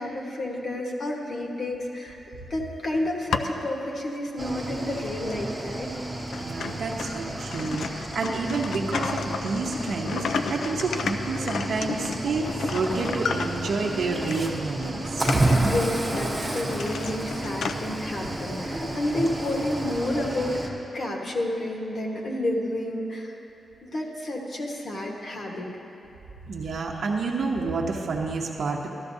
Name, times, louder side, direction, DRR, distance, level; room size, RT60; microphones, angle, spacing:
voice 1, 0.0-2.2 2.5-5.9 15.2-23.4 23.8-25.7, left 1 dB, 45° left, -1 dB, 1.3 m, -30 dB
sound 1, 3.0-3.7 4.3-4.4 5.3-5.4 5.9-6.0 6.3-13.9 14.3-14.5 14.8-17.8, left 5 dB, 70° left, 0.4 m, -32 dB
Cricket / Waves surf, 4.4-20.7, right 1 dB, 5° right, 1.0 m, -31 dB
voice 2, 6.4-15.6 26.5-28.9, right 3 dB, 60° right, -1 dB, 0.8 m, -29 dB
14.0 x 13.0 x 2.7 m, 3.0 s
wide cardioid pair, 170°, 0 cm